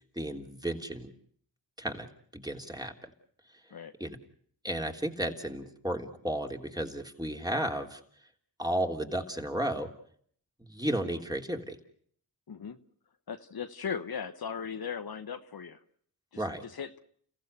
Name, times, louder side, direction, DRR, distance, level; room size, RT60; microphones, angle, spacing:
voice 1, 0.1-1.1 1.8-2.1 2.3-2.9 4.0-4.2 4.6-8.0 8.6-9.9 10.6-11.8 16.4-16.6, right 1 dB, 10° right, 3 dB, 3.2 m, -33 dB
voice 2, 12.5-12.8 13.3-15.8 16.3-17.0, left 6 dB, 65° left, 9 dB, 1.1 m, -38 dB
30.0 x 15.0 x 8.2 m, 0.62 s
cardioid pair, 45°, 40 cm